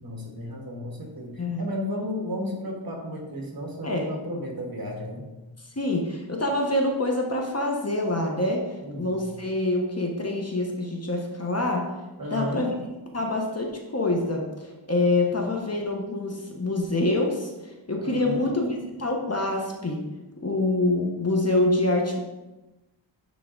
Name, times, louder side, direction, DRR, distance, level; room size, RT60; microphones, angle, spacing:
voice 1, 0.0-5.3 8.8-9.1 12.2-12.6 18.0-18.4, equal, 50° right, 0 dB, 1.6 m, -33 dB
voice 2, 5.8-11.9 12.3-12.7 13.1-20.1 20.4-22.2, left 2 dB, 30° left, 1 dB, 1.1 m, -26 dB
9.6 x 3.8 x 3.9 m, 1.1 s
wide cardioid pair, 75°, 47 cm